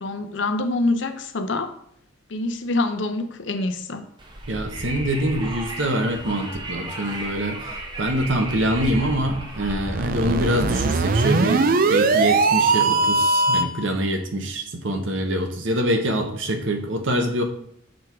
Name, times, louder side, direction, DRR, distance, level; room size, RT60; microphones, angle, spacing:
voice 1, 0.0-1.7 2.3-4.1, left 2 dB, 65° left, 0.6 m, -25 dB
Wind, 4.2-10.8, right 1 dB, 25° right, 0.8 m, -33 dB
voice 2, 4.5-7.7 8.0-17.4, right 1 dB, 75° right, 1.0 m, -25 dB
sound 1, 9.9-13.8, right 3 dB, 45° right, 0.4 m, -20 dB
6.3 x 3.6 x 4.6 m
head